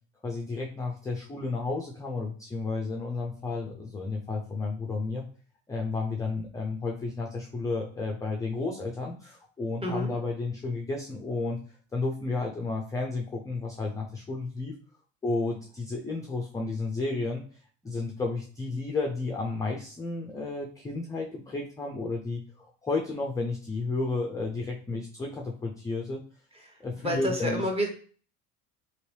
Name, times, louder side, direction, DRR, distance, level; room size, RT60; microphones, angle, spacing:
voice 1, 0.2-5.2 5.7-11.6 11.9-14.7 15.2-17.4 17.8-26.2 26.8-27.6, left 3 dB, 10° left, -1 dB, 0.3 m, -32 dB
voice 2, 9.8-10.1 26.5-27.9, equal, 15° right, 1 dB, 0.9 m, -30 dB
3.0 x 2.9 x 3.2 m, 0.42 s
cardioid pair, 120°, 37 cm